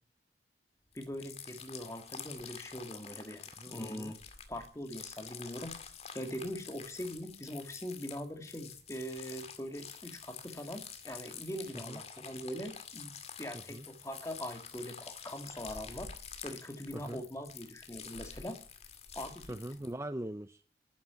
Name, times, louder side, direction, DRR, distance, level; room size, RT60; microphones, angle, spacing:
sound 1, 0.9-19.9, left 7 dB, 35° left, 2.1 m, -48 dB
voice 1, 0.9-4.2 4.5-5.8 6.1-13.1 13.4-16.1 16.4-18.6 19.1-19.6, equal, 15° left, 6 dB, 2.3 m, -42 dB
voice 2, 3.6-4.1 11.9-12.0 13.7-13.8 16.9-17.2 19.5-20.6, right 1 dB, 15° right, 11 dB, 0.6 m, -41 dB
11.5 x 10.5 x 8.4 m, 0.42 s
head